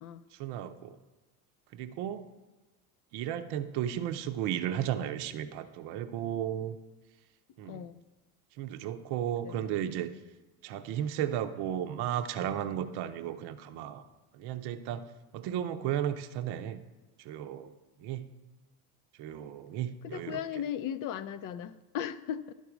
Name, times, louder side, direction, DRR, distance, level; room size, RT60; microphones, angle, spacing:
voice 1, 0.3-1.0 1.7-2.3 3.1-6.8 7.6-7.9 8.6-10.1 10.6-14.0 14.3-15.0 15.3-16.8 17.2-17.7 18.0-18.3 19.2-20.4, right 10 dB, 55° right, 9 dB, 0.8 m, -34 dB
voice 2, 7.6-8.0 9.4-9.7 20.0-22.5, left 9 dB, 45° left, 13 dB, 0.6 m, -37 dB
11.5 x 4.0 x 6.1 m, 1.2 s
hypercardioid pair, 75°, 46 cm